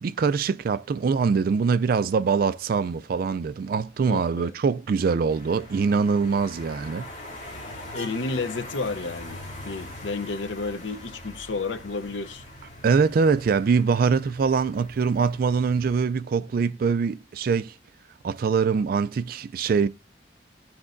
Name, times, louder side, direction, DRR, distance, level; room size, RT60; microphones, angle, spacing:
voice 1, 0.0-7.1 12.8-17.7 18.2-19.9, right 5 dB, 50° right, 0.3 m, -23 dB
voice 2, 4.0-4.5 7.9-9.4 9.6-12.4, left 3 dB, 85° left, 0.7 m, -31 dB
sound 1, 5.3-16.0, left 1 dB, 40° left, 2.6 m, -42 dB
16.0 x 6.1 x 2.5 m
head